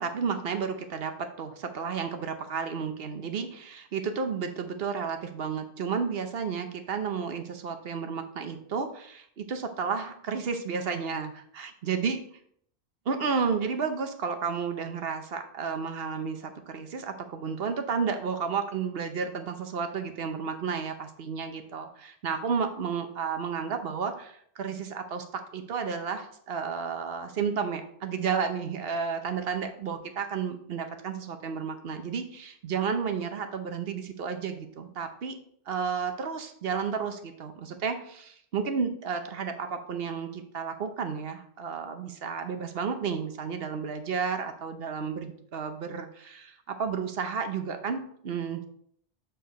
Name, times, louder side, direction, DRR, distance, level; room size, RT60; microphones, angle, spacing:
voice 1, 0.0-12.2 13.1-35.4 35.7-48.6, right 6 dB, 70° right, 7 dB, 1.0 m, -32 dB
7.8 x 4.5 x 4.1 m, 0.65 s
omnidirectional pair, 1.1 m